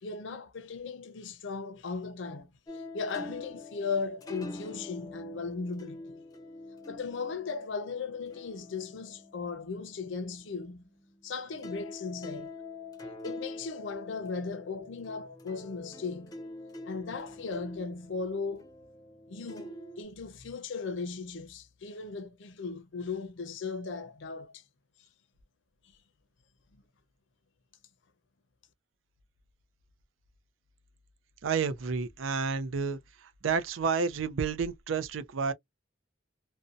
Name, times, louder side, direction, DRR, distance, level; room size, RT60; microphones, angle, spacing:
voice 1, 0.0-6.2 6.9-10.9 11.2-12.5 13.2-16.4 16.8-18.7 19.3-24.6, left 4 dB, 70° left, 0.6 m, -37 dB
sound 1, 2.7-11.3 11.6-20.0, left 2 dB, 20° left, 0.5 m, -45 dB
voice 2, 31.4-33.0 33.4-35.5, right 5 dB, 90° right, 0.5 m, -30 dB
2.6 x 2.1 x 2.4 m
head